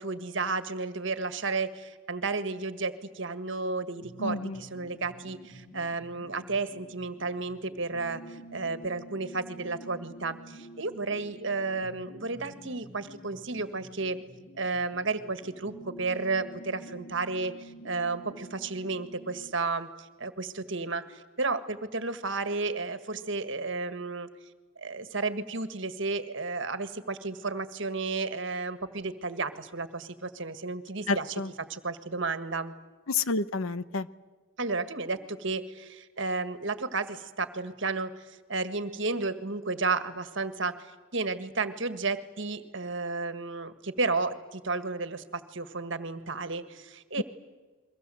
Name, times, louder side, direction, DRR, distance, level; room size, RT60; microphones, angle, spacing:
voice 1, 0.0-14.2 14.6-24.3 24.8-32.7 34.6-47.2, right 3 dB, 60° right, 10 dB, 1.7 m, -32 dB
sound 1, 4.0-19.5, right 1 dB, 50° left, 2.5 m, -49 dB
voice 2, 4.2-4.6 31.1-31.5 33.1-34.1 47.2-47.3, left 3 dB, 70° left, 14 dB, 0.9 m, -29 dB
29.5 x 23.0 x 7.8 m, 1.3 s
head